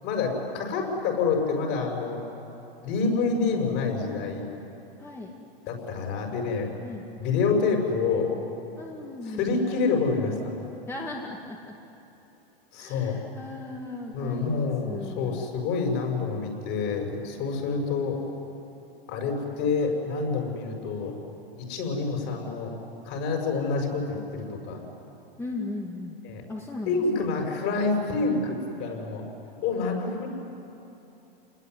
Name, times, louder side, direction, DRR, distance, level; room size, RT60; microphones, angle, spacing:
voice 1, 0.0-2.2 2.8-4.5 5.7-6.7 7.2-8.3 9.3-10.5 12.7-13.2 14.1-18.2 19.1-21.2 21.5-22.7 23.0-24.8 26.2-26.4 26.9-29.2 29.6-30.3, left 4 dB, 45° left, 2 dB, 6.9 m, -27 dB
voice 2, 5.0-5.4 6.8-7.0 8.8-9.5 10.9-11.7 12.8-15.5 25.4-26.2 26.5-27.4, left 2 dB, 10° left, -1 dB, 2.2 m, -37 dB
29.0 x 20.5 x 9.6 m, 3.0 s
hypercardioid pair, 120°, 30 cm